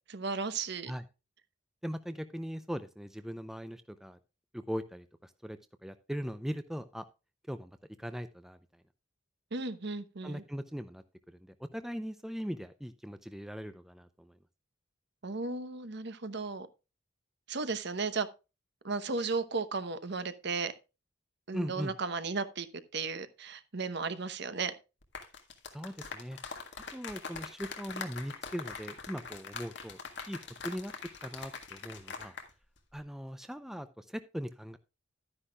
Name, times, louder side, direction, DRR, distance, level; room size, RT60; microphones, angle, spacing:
voice 1, 0.1-0.9 9.5-10.4 15.2-16.7 17.5-18.3 18.8-20.7 21.5-22.7 22.9-24.7, right 4 dB, 60° right, 1.0 m, -35 dB
voice 2, 1.8-4.2 4.5-7.0 7.5-8.6 10.2-14.4 21.5-21.9 25.7-26.4 26.9-30.0 30.3-32.4 32.9-34.8, equal, ahead, 0.5 m, -40 dB
sound 1, 25.0-32.5 32.8-33.0, left 5 dB, 60° left, 1.7 m, -43 dB
12.0 x 9.9 x 2.3 m
head